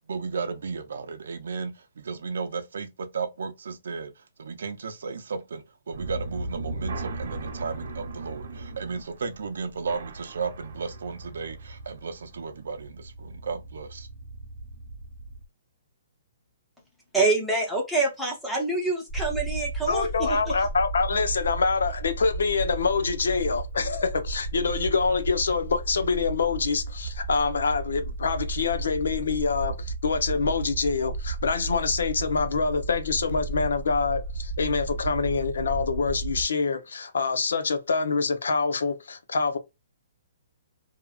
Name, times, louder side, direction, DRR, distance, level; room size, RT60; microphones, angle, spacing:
voice 1, 0.1-4.1 4.4-14.1, right 5 dB, 70° right, 0.6 m, -34 dB
sound 1, 5.9-15.4, right 2 dB, 55° right, 1.0 m, -38 dB
voice 2, 17.1-20.5, right 3 dB, ahead, 0.7 m, -26 dB
sound 2, 19.1-36.4, right 3 dB, 35° left, 1.1 m, -34 dB
voice 3, 19.9-39.6, left 4 dB, 85° left, 0.6 m, -26 dB
2.8 x 2.5 x 2.3 m
hypercardioid pair, 175°, 0 cm